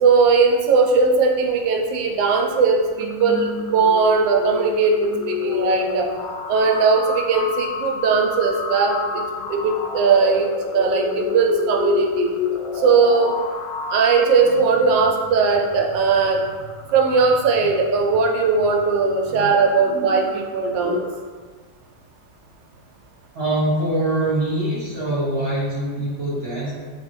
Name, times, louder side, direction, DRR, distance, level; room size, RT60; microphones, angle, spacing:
voice 1, 0.0-6.1 6.5-9.2 9.5-12.3 12.7-13.3 13.9-16.4 16.9-21.0, right 4 dB, 85° right, 1 dB, 1.3 m, -19 dB
sound 1, 3.0-21.2, left 6 dB, 90° left, 1.3 m, -30 dB
voice 2, 23.3-26.8, right 1 dB, 40° right, -7 dB, 1.3 m, -23 dB
4.1 x 3.2 x 3.0 m, 1.5 s
omnidirectional pair, 1.9 m